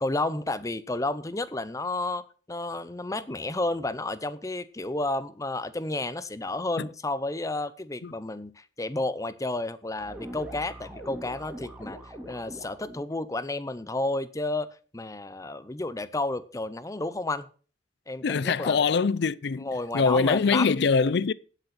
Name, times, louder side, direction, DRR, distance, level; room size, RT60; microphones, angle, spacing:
voice 1, 0.0-2.2 2.5-14.7 14.9-17.5 18.1-18.8 19.6-20.7, left 2 dB, 20° left, 0.7 m, -31 dB
sound 1, 10.0-13.1, equal, 5° right, 2.2 m, -42 dB
voice 2, 18.2-21.3, left 5 dB, 65° left, 0.5 m, -24 dB
9.6 x 8.3 x 6.0 m
head